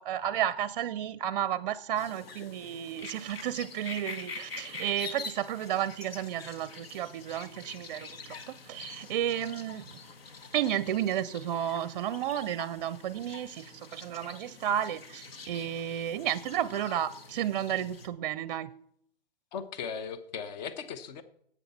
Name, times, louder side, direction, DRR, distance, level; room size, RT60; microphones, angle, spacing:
voice 1, 0.0-9.9 10.5-18.7, right 11 dB, 45° right, 0.5 m, -32 dB
sound 1, 2.0-18.1, left 4 dB, 80° left, 1.4 m, -45 dB
voice 2, 19.5-21.2, left 6 dB, 45° left, 1.0 m, -38 dB
11.0 x 8.2 x 4.1 m
hypercardioid pair, 140°, 30 cm